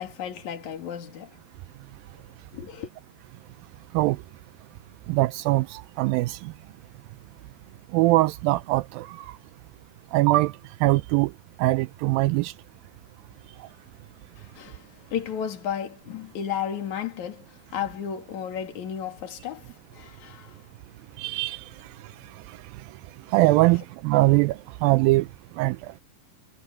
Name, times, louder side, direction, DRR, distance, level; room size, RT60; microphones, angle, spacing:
voice 1, 0.0-1.4 2.5-2.9 14.3-20.7, left 9 dB, 50° left, 3.5 m, -34 dB
voice 2, 5.1-6.5 7.9-9.4 10.1-10.5 10.8-11.3 11.6-12.5 21.2-21.7 23.3-25.3 25.6-25.8, right 19 dB, 85° right, 2.1 m, -22 dB
omnidirectional pair, 4.6 m